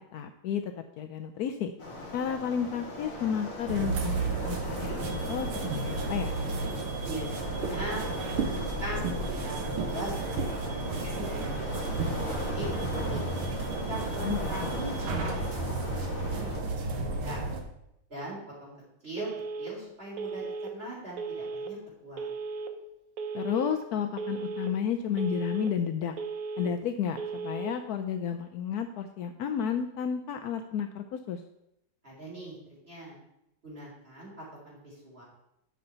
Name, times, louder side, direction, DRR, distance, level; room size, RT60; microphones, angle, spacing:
voice 1, 0.0-1.7 2.1-5.5 5.8-6.4 14.2-14.7 23.3-26.1 26.6-31.4, left 8 dB, 75° left, 7 dB, 0.8 m, -32 dB
Waves surf, 1.8-16.6, left 1 dB, 40° left, 2.7 m, -39 dB
sound 1, 3.7-17.6, right 3 dB, 80° right, 2.0 m, -32 dB
voice 2, 7.0-8.0 8.5-13.2 13.9-17.4 18.1-18.7 19.0-19.3 19.6-22.3 32.0-32.5 32.9-33.2 33.6-35.2, right 1 dB, 30° right, -5 dB, 3.7 m, -41 dB
Telephone, 19.2-19.7 20.2-20.7 21.2-21.7 22.2-22.7 23.2-23.7 24.2-24.7 25.2-25.7 26.2-26.7 27.2-27.7, right 4 dB, 55° right, 1.2 m, -36 dB
7.9 x 5.8 x 7.9 m, 0.83 s
omnidirectional pair, 2.3 m